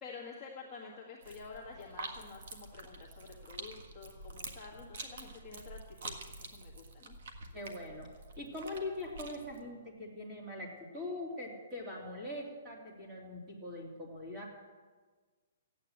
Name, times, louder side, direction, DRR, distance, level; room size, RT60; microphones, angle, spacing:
voice 1, 0.0-7.2, left 4 dB, ahead, -11 dB, 1.8 m, -49 dB
sound 1, 1.2-9.6, right 3 dB, 55° right, 1.6 m, -47 dB
voice 2, 7.5-8.1 8.4-14.5, left 2 dB, 15° right, -3 dB, 2.9 m, -42 dB
14.5 x 9.4 x 8.1 m, 1.4 s
hypercardioid pair, 175°, 0 cm